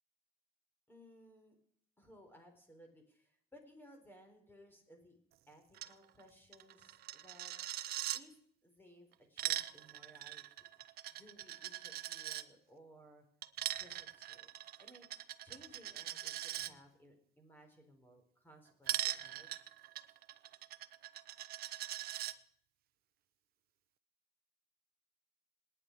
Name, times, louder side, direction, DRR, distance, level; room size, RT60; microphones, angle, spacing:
voice 1, 0.9-1.6 2.0-5.2 5.5-7.5 8.1-10.4 11.1-13.3 13.7-14.5 14.8-19.5, equal, 10° left, 4 dB, 4.3 m, -61 dB
Coin (dropping), 5.7-5.9 6.2-6.3 6.5-8.2 9.1-12.4 13.4-16.7 18.9-22.3, right 13 dB, 65° right, 0.7 m, -41 dB
27.0 x 9.8 x 4.7 m, 0.62 s
cardioid pair, 110°, 17 cm